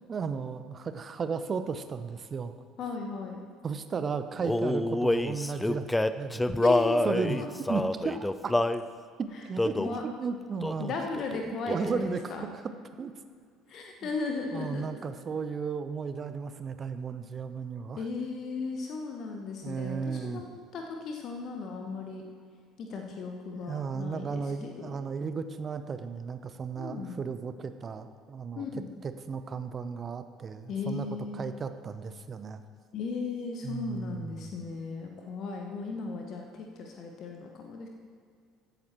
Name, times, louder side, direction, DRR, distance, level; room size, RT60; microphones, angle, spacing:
voice 1, 0.1-2.5 3.6-5.9 6.2-6.7 7.0-7.4 7.7-8.5 9.2-10.9 11.7-12.6 13.0-13.1 14.0-14.1 14.5-18.1 19.6-20.4 23.5-28.7 29.0-31.1 31.3-32.6 33.6-34.5, right 5 dB, 35° right, 10 dB, 0.7 m, -35 dB
voice 2, 2.8-3.4 6.6-7.5 9.8-10.0 10.8-12.5 13.7-14.8 18.0-22.2 22.8-24.9 26.8-27.1 28.5-28.9 30.7-31.4 32.9-37.9, left 4 dB, 45° left, 3 dB, 1.0 m, -36 dB
Male singing, 4.4-8.8 9.6-10.0 10.6-10.9 11.2-12.1, left 1 dB, 10° left, 0.4 m, -27 dB
15.5 x 11.0 x 3.0 m, 2.2 s
figure-of-eight pair, 55°, 0 cm